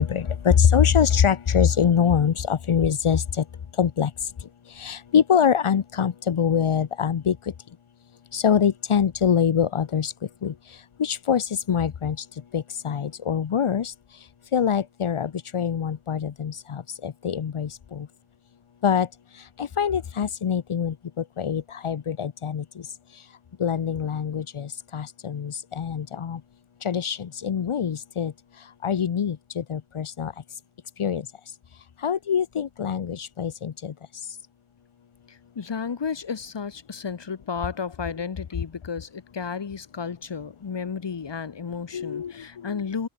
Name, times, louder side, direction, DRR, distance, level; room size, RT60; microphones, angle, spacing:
voice 1, 0.0-3.2 3.8-4.1 4.8-7.4 8.3-10.1 10.4-10.5 11.0-12.2 12.5-13.9 14.5-18.1 18.8-19.1 19.6-20.9 21.4-22.6 23.6-26.4 26.8-28.3 28.8-30.3 31.0-31.2 32.0-33.9 41.9-42.3, left 7 dB, 85° left, 3.8 m, -24 dB
voice 2, 35.3-43.1, left 6 dB, 60° left, 5.6 m, -33 dB
open air
wide cardioid pair, 120°, 49 cm